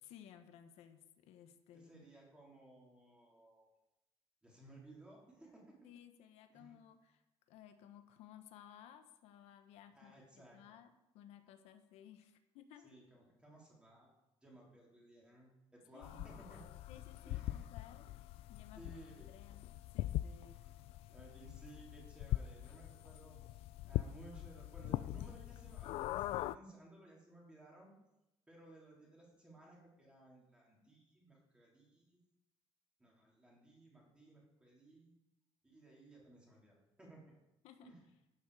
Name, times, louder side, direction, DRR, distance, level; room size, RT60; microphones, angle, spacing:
voice 1, 0.1-2.1 5.8-7.2 7.5-10.2 10.5-12.9 15.9-16.3 16.9-20.6 37.6-37.9, left 10 dB, 90° left, 8 dB, 1.1 m, -58 dB
voice 2, 1.7-3.7 4.4-5.8 6.5-6.7 9.9-10.6 12.8-14.1 14.4-16.6 17.2-17.6 18.8-19.3 20.5-27.9 28.5-32.2 33.0-35.1 35.6-37.2 37.8-38.0, right 2 dB, 10° right, -4 dB, 3.6 m, -59 dB
sound 1, 16.0-26.6, left 15 dB, 65° left, 0.4 m, -42 dB
12.0 x 10.0 x 4.9 m, 0.90 s
cardioid pair, 175°, 11 cm